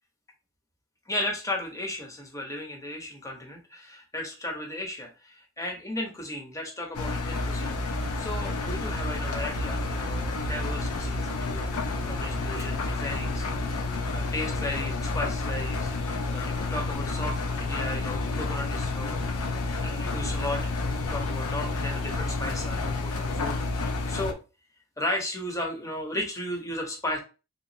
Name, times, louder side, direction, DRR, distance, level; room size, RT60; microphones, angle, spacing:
voice 1, 1.1-7.8 8.2-13.5 14.1-15.9 16.3-19.2 19.8-23.6 24.1-24.4 25.0-27.2, left 1 dB, 15° left, 1 dB, 0.8 m, -35 dB
Engine, 6.9-24.3, left 3 dB, 75° left, 0.6 m, -30 dB
3.7 x 2.9 x 2.7 m, 0.31 s
head